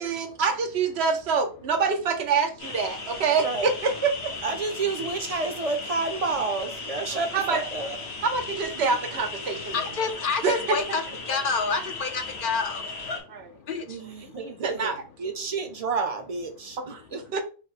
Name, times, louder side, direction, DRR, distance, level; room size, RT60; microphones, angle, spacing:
voice 1, 0.0-4.3 7.1-7.6 8.2-9.9 10.4-11.0 13.3-13.5 14.3-15.0 16.8-17.4, right 5 dB, 85° right, 6 dB, 1.0 m, -26 dB
sound 1, 2.6-13.2, left 3 dB, 85° left, 1.7 m, -36 dB
voice 2, 4.4-8.0 8.8-9.0 13.9-14.9 15.2-17.2, right 4 dB, 40° right, 6 dB, 0.7 m, -30 dB
voice 3, 10.0-11.0 11.3-12.8 13.7-13.8, left 4 dB, 60° left, 6 dB, 0.8 m, -27 dB
5.1 x 2.1 x 4.1 m, 0.36 s
omnidirectional pair, 1.1 m